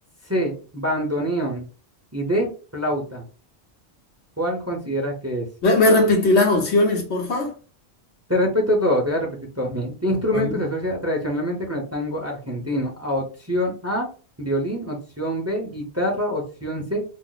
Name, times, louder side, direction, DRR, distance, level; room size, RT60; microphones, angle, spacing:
voice 1, 0.3-1.6 2.1-3.2 4.4-5.5 8.3-14.1 14.4-17.0, equal, 15° right, 0.6 m, -25 dB
voice 2, 5.6-7.5 10.3-10.6, left 2 dB, 80° left, 1.2 m, -18 dB
2.7 x 2.0 x 3.9 m
omnidirectional pair, 1.1 m